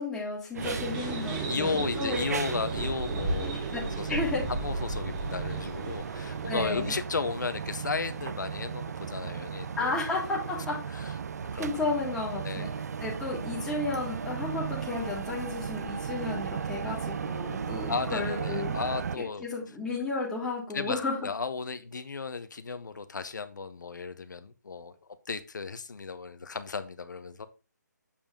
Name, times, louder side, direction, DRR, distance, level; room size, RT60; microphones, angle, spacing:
voice 1, 0.0-2.2 3.7-3.8 4.1-4.5 6.5-7.0 9.8-10.8 11.6-12.7 13.0-18.7 19.2-21.2, left 3 dB, 5° left, -5 dB, 1.9 m, -33 dB
sound 1, 0.5-19.2, right 7 dB, 55° right, 0.4 m, -36 dB
sound 2, 0.6-6.8, right 2 dB, 20° right, 1.3 m, -35 dB
voice 2, 1.5-3.6 4.0-4.2 4.5-10.0 10.9-11.1 11.5-11.7 12.4-12.7 17.9-19.4 20.7-27.5, left 4 dB, 70° left, 10 dB, 0.8 m, -34 dB
6.9 x 5.0 x 3.7 m, 0.32 s
figure-of-eight pair, 155°, 10 cm